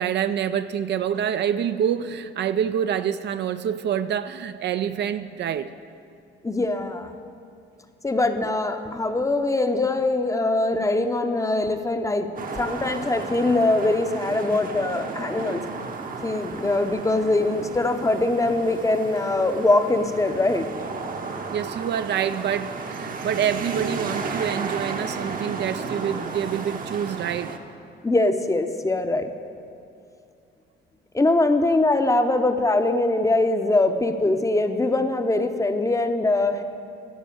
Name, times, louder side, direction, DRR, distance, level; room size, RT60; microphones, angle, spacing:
voice 1, 0.0-5.7 21.5-27.6, right 9 dB, 60° right, 11 dB, 0.4 m, -26 dB
voice 2, 6.4-7.2 8.0-12.3 12.6-15.6 16.2-20.8 28.0-29.3 31.1-36.6, left 2 dB, 15° left, 7 dB, 0.7 m, -22 dB
sound 1, 12.4-27.6, right 4 dB, 45° right, 0.9 m, -33 dB
12.5 x 4.8 x 8.5 m, 2.5 s
cardioid pair, 90°, 20 cm